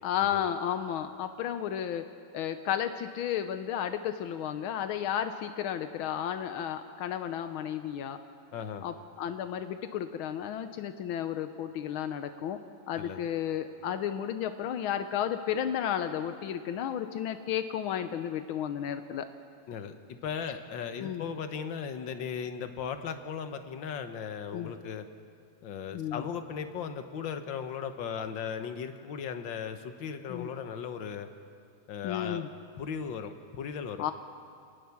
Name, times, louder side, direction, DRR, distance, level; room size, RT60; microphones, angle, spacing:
voice 1, 0.0-2.1 2.3-8.2 8.8-12.6 12.9-19.3 21.0-21.2 24.5-24.7 25.9-26.3 30.3-30.5 32.0-32.5 34.0-34.1, left 9 dB, 90° left, 9 dB, 1.6 m, -33 dB
voice 2, 8.5-8.9 13.0-13.2 19.7-25.1 25.6-31.3 31.9-32.5 32.8-34.1, left 7 dB, 70° left, 8 dB, 1.9 m, -37 dB
28.0 x 19.0 x 7.2 m, 2.3 s
omnidirectional pair, 2.2 m